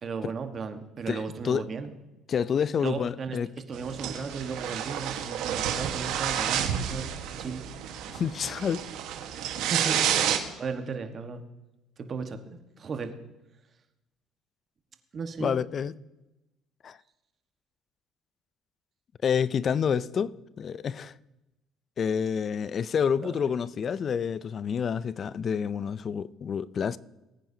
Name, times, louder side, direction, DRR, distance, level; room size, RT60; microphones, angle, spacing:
voice 1, 0.0-2.0 2.8-3.4 3.7-7.1 7.4-7.6 9.6-10.1 10.5-11.4 12.0-13.1 15.1-15.6 23.2-23.3, right 5 dB, 40° right, 1.3 m, -35 dB
voice 2, 1.1-1.6 2.3-3.5 8.1-8.8 15.4-15.9 16.8-17.0 19.2-21.1 22.0-27.0, left 7 dB, 40° left, 0.4 m, -28 dB
sound 1, 3.7-10.4, right 9 dB, 75° right, 1.3 m, -30 dB
19.5 x 9.1 x 2.8 m
cardioid pair, 100°, 0 cm